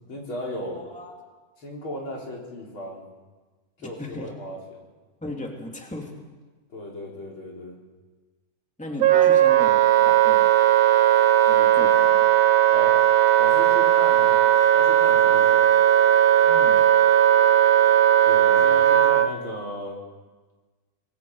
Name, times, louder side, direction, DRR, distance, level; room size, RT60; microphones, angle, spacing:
voice 1, 0.1-0.8 1.6-3.0 3.8-4.8 6.7-7.8 12.7-13.0 13.4-14.4 14.7-15.7 18.3-20.0, left 1 dB, 80° left, -2 dB, 4.8 m, -36 dB
voice 2, 0.7-1.1 3.8-4.3 5.2-6.1 8.8-10.5 11.4-12.3 16.4-16.9, left 1 dB, 5° left, 0 dB, 2.5 m, -37 dB
Wind instrument woodwind instrument, 9.0-19.3, right 11 dB, 70° right, 1.7 m, -17 dB
26.0 x 20.5 x 4.8 m, 1.3 s
omnidirectional pair, 2.2 m